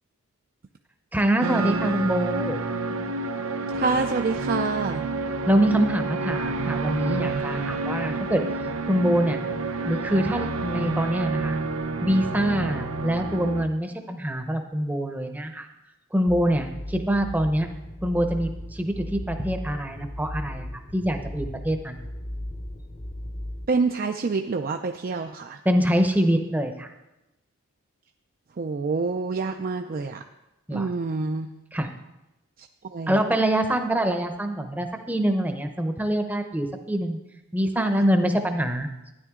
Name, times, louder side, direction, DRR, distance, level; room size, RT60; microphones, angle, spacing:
voice 1, 1.1-2.6 5.5-8.4 8.9-9.4 9.8-11.6 12.0-15.7 16.1-17.7 18.0-20.7 20.9-22.0 25.6-26.9 30.7-30.9 31.7-31.9 33.1-37.2 37.5-38.9, right 1 dB, 5° right, 6 dB, 0.7 m, -24 dB
sound 1, 1.4-13.6, right 3 dB, 70° right, 0.8 m, -29 dB
voice 2, 3.7-5.0 23.7-25.6 28.6-30.2 30.7-31.5 32.6-33.2 37.8-37.9, right 4 dB, 40° right, 5 dB, 0.4 m, -27 dB
sound 2, 16.3-23.7, left 1 dB, 35° left, 0.8 m, -36 dB
12.5 x 10.0 x 3.7 m, 0.96 s
head